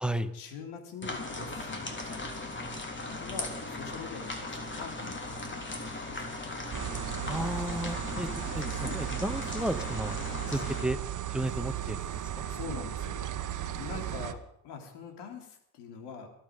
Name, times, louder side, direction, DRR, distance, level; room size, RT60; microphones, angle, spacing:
voice 1, 0.3-2.5 3.1-6.5 12.5-13.4 13.6-16.3, left 5 dB, 75° left, 4 dB, 3.5 m, -44 dB
sound 1, 1.0-10.9, left 2 dB, 30° left, 3.5 m, -38 dB
sound 2, 6.7-14.3, right 11 dB, 50° right, 1.3 m, -36 dB
voice 2, 7.3-8.3 8.5-10.2 10.5-11.0 11.3-12.0, right 1 dB, ahead, 9 dB, 1.5 m, -33 dB
24.0 x 8.8 x 5.3 m, 0.72 s
supercardioid pair, 70°, 40 cm